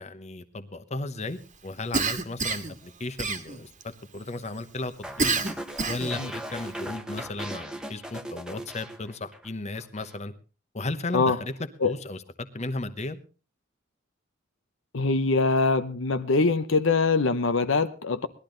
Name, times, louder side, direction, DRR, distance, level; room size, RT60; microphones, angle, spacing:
voice 1, 0.0-5.3 5.9-10.3 10.7-11.5 11.8-12.2 12.5-13.2, left 2 dB, 35° left, 11 dB, 1.0 m, -35 dB
Cough, 1.9-2.8 3.2-3.8 5.2-6.2, right 4 dB, 40° right, 1.6 m, -27 dB
sound 1, 5.0-9.5 9.8-10.2, right 1 dB, 5° right, 1.1 m, -38 dB
voice 2, 14.9-18.3, left 3 dB, 70° left, 10 dB, 0.9 m, -23 dB
19.0 x 12.0 x 3.9 m, 0.34 s
head